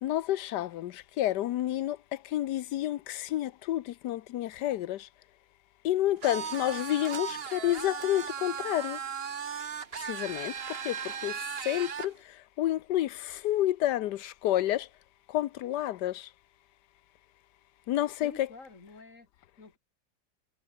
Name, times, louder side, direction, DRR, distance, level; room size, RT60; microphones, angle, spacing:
voice 1, 0.0-2.0 2.3-5.1 5.8-9.0 10.1-10.5 10.8-10.9 11.2-11.3 11.7-12.1 12.6-14.9 15.3-16.2 17.9-18.3, left 13 dB, 85° left, 1.3 m, -29 dB
sound 1, 6.2-12.1, right 7 dB, 40° right, 1.1 m, -37 dB
voice 2, 18.2-19.8, left 3 dB, 50° left, 3.2 m, -50 dB
omnidirectional pair, 1.8 m